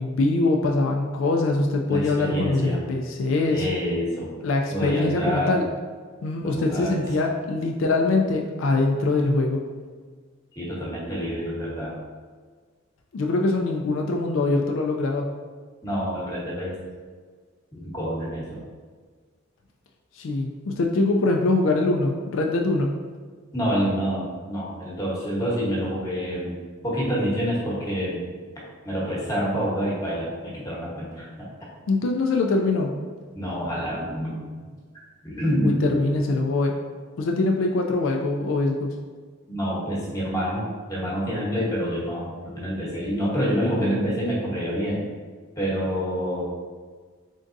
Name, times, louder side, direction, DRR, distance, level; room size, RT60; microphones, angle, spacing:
voice 1, 0.0-3.6 4.4-5.7 6.2-9.6 13.1-15.3 20.2-22.9 31.9-32.9 35.6-36.8 37.2-38.9, left 2 dB, 75° left, 1 dB, 0.4 m, -23 dB
voice 2, 1.9-2.8 3.5-4.4 4.7-5.6 6.4-7.0 10.6-12.0 15.8-16.7 17.7-18.6 23.5-26.6 26.8-28.2 28.8-31.5 33.3-34.4 35.2-36.0 39.5-40.6 40.9-45.1 45.6-46.4, equal, 15° left, -6 dB, 1.0 m, -27 dB
3.9 x 3.5 x 2.5 m, 1.5 s
head